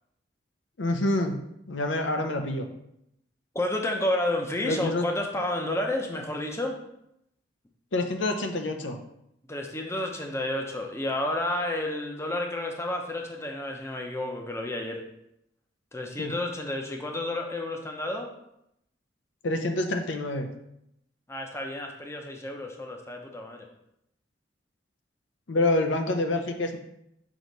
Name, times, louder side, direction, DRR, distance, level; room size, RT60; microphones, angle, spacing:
voice 1, 0.8-1.4 1.7-2.7 4.6-5.0 7.9-9.0 16.2-16.3 19.4-20.5 25.5-26.8, left 2 dB, 90° left, 5 dB, 0.7 m, -27 dB
voice 2, 3.5-6.8 9.5-15.0 15.9-18.3 21.3-23.7, left 1 dB, 15° left, 2 dB, 0.7 m, -31 dB
6.1 x 3.1 x 5.2 m, 0.79 s
head